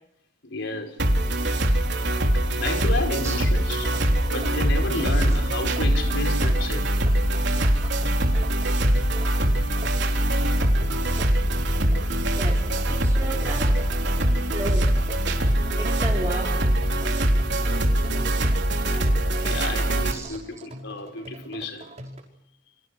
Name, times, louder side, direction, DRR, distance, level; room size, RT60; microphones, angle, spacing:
voice 1, 0.4-1.0 2.5-3.9 4.3-7.0 18.9-19.1 19.4-21.9, left 2 dB, 65° left, 5 dB, 5.0 m, -32 dB
sound 1, 1.0-20.1, right 1 dB, 60° right, 3.8 m, -23 dB
sound 2, 3.8-22.2, right 1 dB, 35° right, 5.6 m, -43 dB
voice 2, 13.0-14.0 14.5-14.9 15.8-16.6 20.1-20.3, right 2 dB, 15° right, -4 dB, 4.1 m, -33 dB
29.0 x 26.5 x 6.5 m, 0.76 s
head